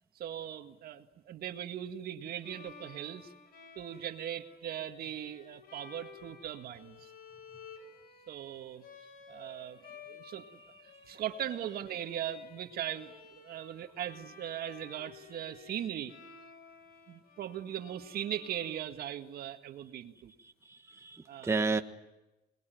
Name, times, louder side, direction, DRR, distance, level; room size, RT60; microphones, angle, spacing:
voice 1, 0.1-3.3 3.7-7.1 8.3-8.8 9.3-9.8 10.1-10.5 11.1-16.1 17.1-20.3 21.3-21.7, right 10 dB, 65° right, 7 dB, 1.9 m, -39 dB
Bowed string instrument, 2.4-19.3, left 5 dB, 60° left, 5.9 m, -54 dB
voice 2, 20.6-21.8, right 3 dB, 15° right, 6 dB, 1.4 m, -32 dB
27.0 x 21.5 x 9.4 m, 0.98 s
cardioid pair, 110°, 17 cm